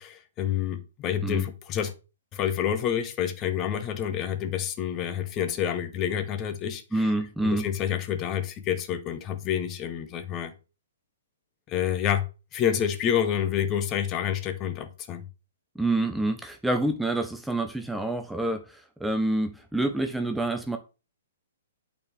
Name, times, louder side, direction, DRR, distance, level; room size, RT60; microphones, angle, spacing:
voice 1, 0.0-1.9 2.3-7.1 7.4-10.5 11.7-15.3, left 9 dB, 30° left, 0.9 m, -28 dB
voice 2, 6.9-7.7 15.8-20.8, right 2 dB, 5° right, 0.6 m, -27 dB
8.6 x 4.3 x 3.5 m
hypercardioid pair, 130°, 0 cm